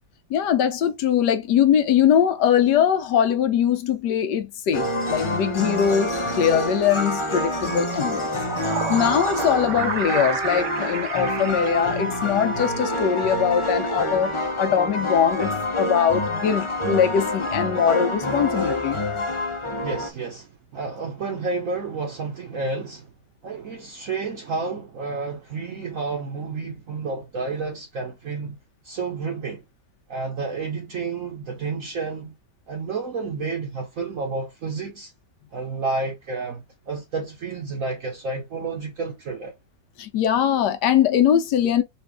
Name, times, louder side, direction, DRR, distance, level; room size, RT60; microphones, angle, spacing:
voice 1, 0.3-8.3 8.6-19.0 40.0-41.8, left 9 dB, 80° left, 1.3 m, -21 dB
sound 1, 4.7-20.1, left 1 dB, 45° left, 0.3 m, -27 dB
sound 2, 8.2-12.6, right 7 dB, 80° right, 1.4 m, -31 dB
voice 2, 19.8-23.1 23.4-28.6 28.8-29.6 30.1-32.3 32.7-35.1 35.5-39.5, right 4 dB, 55° right, 1.1 m, -30 dB
4.2 x 2.5 x 3.4 m
omnidirectional pair, 1.8 m